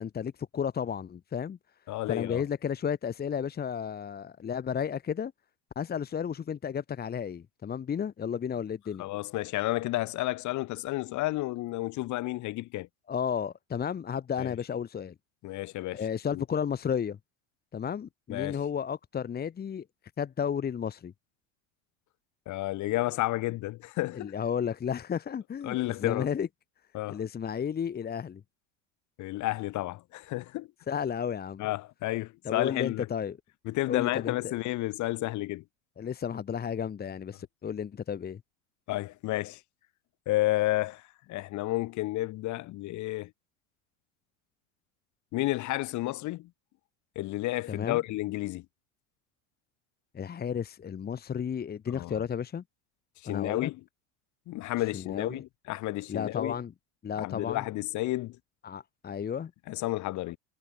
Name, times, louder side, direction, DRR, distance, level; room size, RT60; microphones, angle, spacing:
voice 1, 0.0-1.6 2.1-5.3 5.7-9.0 13.1-15.1 15.9-17.2 17.7-19.8 20.2-21.1 24.1-26.5 27.1-28.4 30.9-31.6 32.4-33.4 33.9-34.5 36.0-38.4 47.7-48.0 50.1-52.6 53.3-53.7 54.9-55.4 56.1-56.7 57.0-57.7 58.6-59.5, left 7 dB, 25° left, 1.5 m, -33 dB
voice 2, 1.9-2.4 9.0-12.9 14.4-14.5 15.4-16.0 16.3-16.4 18.3-18.6 22.5-24.3 25.6-26.3 26.9-27.2 29.2-30.7 31.6-33.1 33.6-35.6 38.9-39.6 40.3-41.0 41.3-43.3 45.3-46.5 47.1-48.6 51.9-52.1 53.2-53.8 54.5-56.5 57.2-58.4 59.7-60.4, left 18 dB, 50° left, 3.2 m, -31 dB
hypercardioid pair, 85°, 37 cm